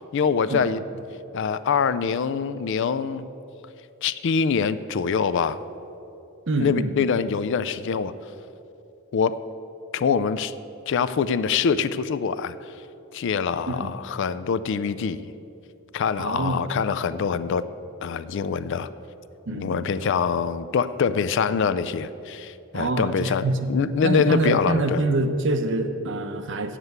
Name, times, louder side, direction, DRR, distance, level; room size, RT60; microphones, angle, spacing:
voice 1, 0.1-0.8 1.3-3.3 4.0-5.6 6.6-8.1 9.1-9.4 9.9-10.5 10.9-12.6 13.1-15.3 15.9-17.6 18.0-18.9 19.5-25.0, left 6 dB, 60° left, 14 dB, 0.4 m, -24 dB
voice 2, 6.5-7.1 13.7-14.0 16.2-16.9 17.4-17.5 19.5-20.1 22.7-23.7 24.0-26.8, right 2 dB, 60° right, 8 dB, 0.7 m, -26 dB
8.1 x 7.5 x 7.9 m, 2.9 s
head